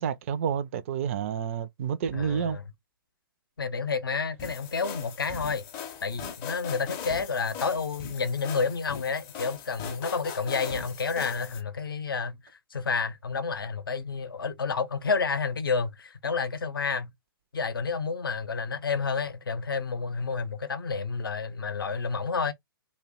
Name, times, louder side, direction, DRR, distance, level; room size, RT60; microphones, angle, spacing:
voice 1, 0.0-2.6, right 7 dB, 35° right, 0.3 m, -29 dB
voice 2, 2.1-2.6 3.6-5.6 6.0-17.1 17.5-22.5, left 5 dB, 70° left, 0.6 m, -30 dB
sound 1, 4.4-11.6, left 7 dB, 25° left, 0.5 m, -40 dB
2.6 x 2.1 x 3.5 m
figure-of-eight pair, 120°, 12 cm